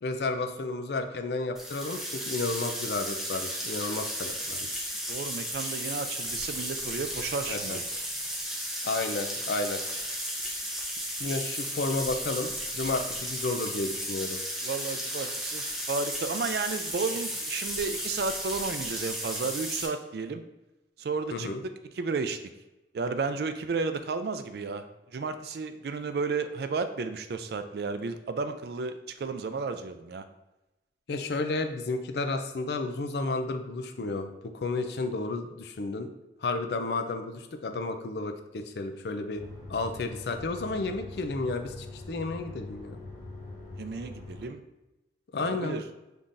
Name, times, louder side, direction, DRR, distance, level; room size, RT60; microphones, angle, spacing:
voice 1, 0.0-4.8 7.5-7.8 8.8-9.8 11.2-14.4 21.3-21.6 31.1-36.1 36.4-39.4 39.7-43.0 45.3-45.8, left 3 dB, 65° left, 7 dB, 0.4 m, -32 dB
sound 1, 1.6-19.9, equal, ahead, 0.6 m, -34 dB
voice 2, 5.1-7.8 14.6-20.4 21.0-21.5 21.9-22.4 22.9-24.8 25.1-30.2 43.8-44.6 45.4-45.8, right 4 dB, 60° right, 9 dB, 0.4 m, -32 dB
sound 2, 39.3-44.5, left 2 dB, 40° left, 1.3 m, -43 dB
5.6 x 3.5 x 2.6 m, 0.99 s
head